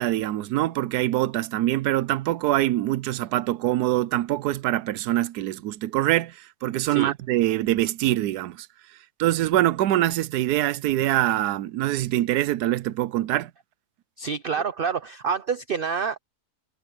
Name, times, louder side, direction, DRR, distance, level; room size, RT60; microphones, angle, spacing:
voice 1, 0.0-8.7 9.2-13.5, right 14 dB, 85° right, 1.2 m, -24 dB
voice 2, 14.2-16.2, right 6 dB, 50° right, 0.6 m, -27 dB
omnidirectional pair, 1.7 m